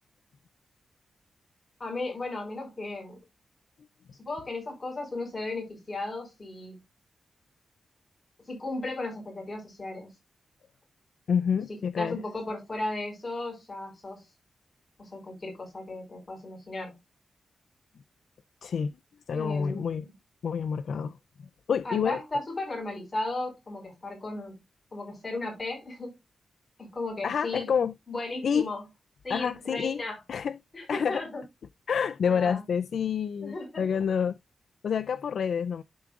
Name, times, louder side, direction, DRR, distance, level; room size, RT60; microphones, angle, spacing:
voice 1, 1.8-3.2 4.2-6.8 8.5-10.1 12.0-14.2 15.0-16.9 19.3-20.1 21.8-24.5 24.9-26.2 26.8-27.7 28.1-28.9 29.2-30.2 30.7-31.4 32.2-32.6 33.4-33.9, left 2 dB, 25° left, 4.9 m, -35 dB
voice 2, 11.3-12.2 18.6-18.9 19.3-20.0 20.4-21.1 21.7-22.2 27.2-27.9 28.4-28.7 29.3-30.0 30.3-30.6 30.9-31.2 31.9-34.4 34.8-35.8, left 7 dB, 75° left, 0.3 m, -28 dB
12.0 x 4.7 x 2.4 m
wide cardioid pair, 130°, 0 cm